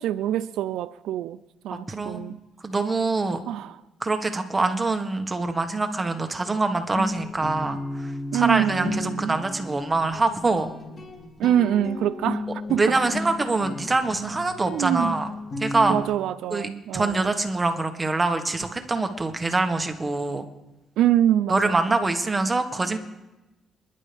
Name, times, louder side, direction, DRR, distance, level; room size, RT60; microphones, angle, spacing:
voice 1, 0.0-1.4 1.6-2.4 3.5-3.8 8.3-9.4 11.4-13.0 14.7-15.1 15.9-17.4 21.0-22.0, right 11 dB, 85° right, 0.5 m, -25 dB
voice 2, 1.9-2.2 2.6-3.4 4.0-10.7 12.8-15.3 15.6-16.0 16.5-20.4 21.5-23.0, right 3 dB, 25° right, 1.6 m, -24 dB
Guitar, 6.9-16.0, left 2 dB, 40° left, 2.8 m, -34 dB
27.0 x 11.0 x 3.5 m
cardioid pair, 90°, 0 cm